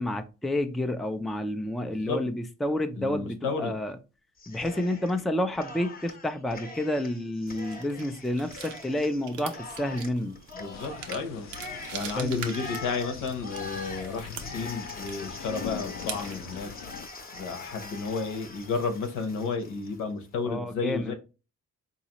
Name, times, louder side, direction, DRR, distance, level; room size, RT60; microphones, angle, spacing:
voice 1, 0.0-4.0 4.5-10.4 12.2-12.3 20.4-21.1, left 1 dB, ahead, 0.4 m, -30 dB
voice 2, 1.8-2.3 3.0-3.8 10.5-11.5 11.9-16.7 17.3-21.1, left 4 dB, 85° left, 1.0 m, -32 dB
Cheering, 4.4-5.2 5.5-20.0, left 3 dB, 30° left, 0.8 m, -43 dB
sound 1, 7.5-16.6, right 7 dB, 90° right, 0.7 m, -44 dB
sound 2, 10.7-17.1, left 8 dB, 60° left, 0.6 m, -43 dB
4.0 x 2.8 x 2.9 m
cardioid pair, 90°, 30 cm